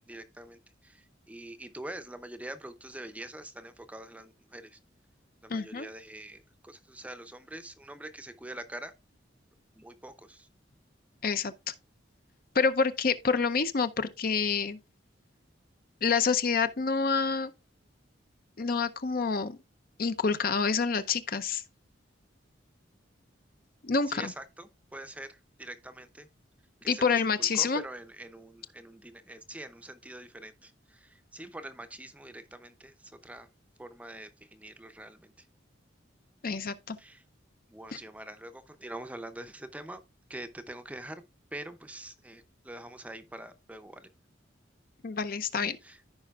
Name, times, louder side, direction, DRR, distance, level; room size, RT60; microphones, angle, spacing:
voice 1, 0.1-4.8 5.4-8.9 9.8-10.5 24.1-26.3 26.8-33.5 33.8-35.3 37.0-37.2 37.7-40.0 40.3-41.2 41.5-44.1 45.8-46.0, right 1 dB, 5° right, 0.6 m, -44 dB
voice 2, 5.5-5.9 11.2-11.5 12.5-14.8 16.0-17.5 18.6-19.6 20.0-21.6 23.8-24.3 26.9-27.8 36.4-37.0 45.0-45.8, left 5 dB, 50° left, 0.6 m, -27 dB
14.5 x 5.0 x 2.4 m
head